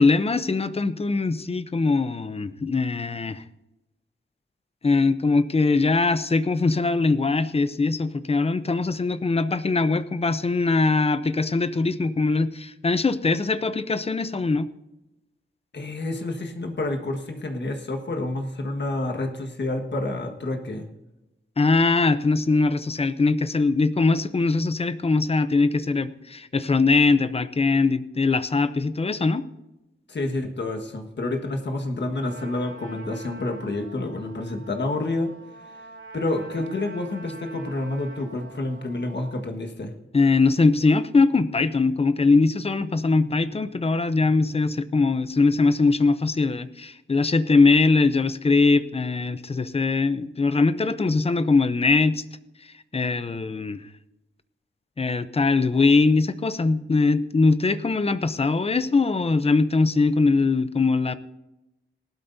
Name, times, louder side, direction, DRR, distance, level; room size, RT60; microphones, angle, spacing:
voice 1, 0.0-3.4 4.8-14.7 21.6-29.5 40.1-52.2 52.9-53.8 55.0-61.2, left 3 dB, 30° left, 13 dB, 0.6 m, -21 dB
voice 2, 15.7-20.9 30.1-35.3 36.1-39.9 55.7-55.9, left 2 dB, 55° left, 4 dB, 1.6 m, -29 dB
Trumpet, 32.1-39.5, right 3 dB, 70° right, 4.5 m, -45 dB
18.5 x 12.0 x 2.7 m, 0.96 s
wide cardioid pair, 145°, 21 cm